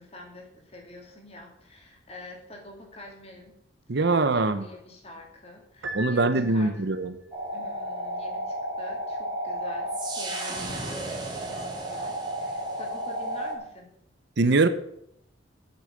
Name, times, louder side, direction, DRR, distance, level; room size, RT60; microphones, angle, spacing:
voice 1, 0.0-3.5 4.1-6.8 7.5-13.9, left 1 dB, 30° left, 1 dB, 2.6 m, -46 dB
voice 2, 3.9-4.6 5.9-7.1 14.4-14.7, right 3 dB, 60° right, 12 dB, 0.7 m, -22 dB
Piano, 5.8-7.1, equal, 75° right, 1.2 m, -38 dB
sound 1, 7.3-13.5, right 1 dB, 20° right, 2.3 m, -32 dB
8.5 x 6.6 x 7.7 m, 0.74 s
head